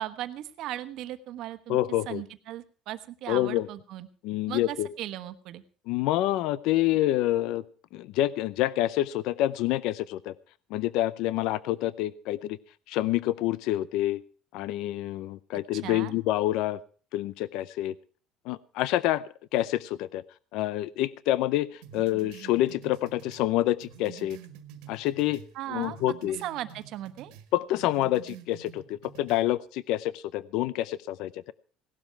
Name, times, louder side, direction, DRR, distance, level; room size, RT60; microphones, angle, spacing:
voice 1, 0.0-1.8 2.1-4.1 4.5-5.6 15.7-16.1 25.5-26.0 26.4-27.3, right 13 dB, 55° right, 10 dB, 1.2 m, -37 dB
voice 2, 1.7-2.2 3.3-3.7 4.2-4.9 5.9-7.6 7.9-10.3 10.7-12.6 12.9-14.2 14.5-16.8 17.1-17.9 18.5-19.2 19.5-20.2 20.5-24.4 24.9-25.4 25.7-26.4 27.5-31.5, left 14 dB, 70° left, 18 dB, 0.6 m, -27 dB
sound 1, 21.8-25.5 25.8-27.5 27.8-29.4, right 9 dB, 90° right, 1.8 m, -48 dB
17.5 x 12.0 x 4.6 m, 0.41 s
cardioid pair, 160°, 0 cm